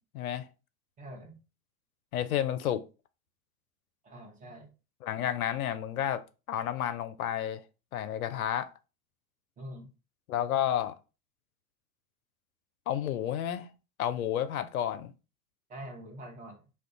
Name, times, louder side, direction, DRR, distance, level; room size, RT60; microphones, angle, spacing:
voice 1, 0.1-0.4 2.1-2.8 5.0-6.2 6.5-7.6 7.9-8.7 10.3-11.0 12.9-13.7 14.0-15.1, left 10 dB, 70° left, 0.5 m, -31 dB
voice 2, 1.0-1.4 4.0-4.7 9.6-9.9 15.7-16.6, equal, 15° right, 0.8 m, -45 dB
2.3 x 2.2 x 3.7 m
figure-of-eight pair, 90°, 44 cm